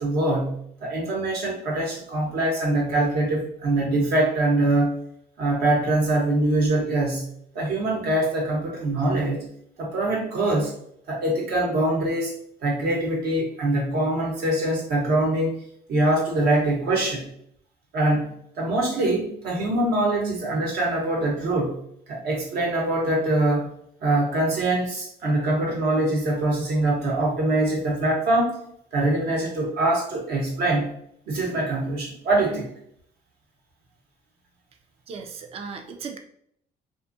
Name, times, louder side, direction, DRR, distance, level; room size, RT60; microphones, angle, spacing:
voice 1, 0.0-5.0 5.4-7.3 7.5-9.5 9.8-10.7 11.1-12.3 12.6-15.5 15.9-17.3 17.9-21.8 22.1-23.7 24.0-28.6 28.9-30.9 31.3-32.7, right 2 dB, 70° right, -2 dB, 1.1 m, -23 dB
voice 2, 35.1-36.2, right 5 dB, 35° right, 5 dB, 0.4 m, -36 dB
2.6 x 2.4 x 2.6 m, 0.68 s
cardioid pair, 110°, 17 cm